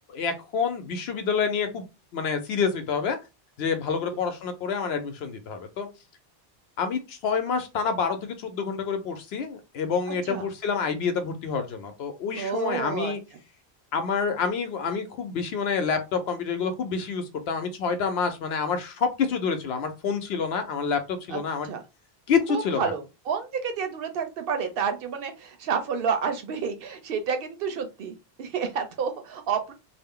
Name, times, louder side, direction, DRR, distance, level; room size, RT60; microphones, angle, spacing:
voice 1, 0.1-1.8 2.1-3.2 3.6-5.9 6.8-13.2 13.9-21.7 22.3-22.9, left 5 dB, 80° left, 8 dB, 0.9 m, -28 dB
voice 2, 12.4-13.1 21.3-21.8 22.5-29.7, right 6 dB, 70° right, 6 dB, 0.8 m, -30 dB
2.4 x 2.0 x 3.6 m, 0.27 s
omnidirectional pair, 1.0 m